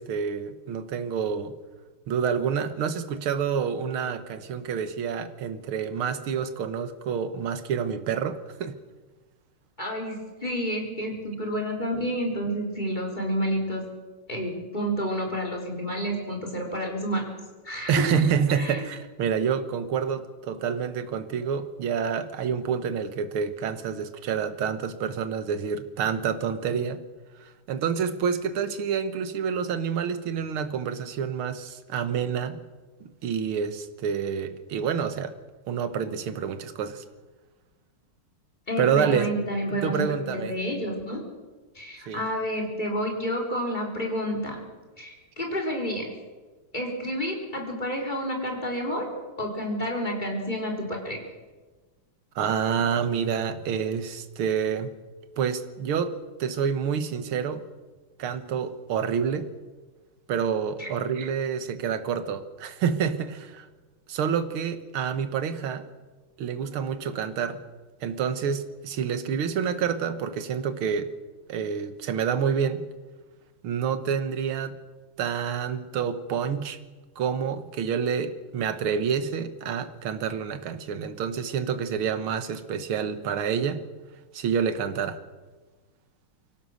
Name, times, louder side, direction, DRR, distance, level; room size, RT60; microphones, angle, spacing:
voice 1, 0.0-1.6 2.1-8.8 17.9-27.0 27.4-32.6 33.0-35.4 35.7-37.0 38.8-39.3 39.7-40.6 42.1-42.2 52.4-54.9 55.4-57.7 58.2-59.5 60.3-63.7 64.1-65.9 66.4-67.6 68.0-71.1 71.5-72.9 73.6-74.8 75.2-76.8 77.2-83.9 84.3-85.2, right 7 dB, 75° right, 2.1 m, -28 dB
voice 2, 9.8-13.8 14.3-17.2 17.6-18.2 18.6-18.9 38.7-41.2 41.7-44.6 45.0-46.1 46.7-49.1 49.4-51.2 60.8-60.9, equal, 20° left, 4.0 m, -30 dB
24.0 x 17.0 x 6.4 m
omnidirectional pair, 2.4 m